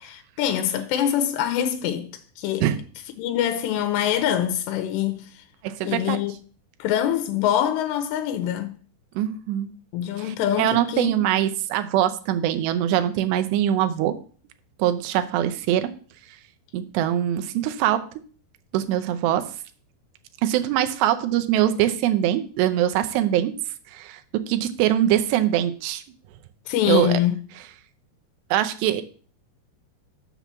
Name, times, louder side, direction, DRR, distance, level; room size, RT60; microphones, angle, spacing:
voice 1, 0.0-2.7 3.2-5.4 5.8-6.3 6.8-8.8 9.9-11.2 26.7-27.4, left 10 dB, 85° left, 2.9 m, -24 dB
voice 2, 5.6-6.2 9.2-9.7 10.2-14.2 14.8-15.9 16.7-18.0 18.7-19.5 20.4-23.6 23.9-26.0 26.9-27.2 28.5-29.0, right 12 dB, 85° right, 2.9 m, -23 dB
7.1 x 6.0 x 6.8 m
omnidirectional pair, 4.8 m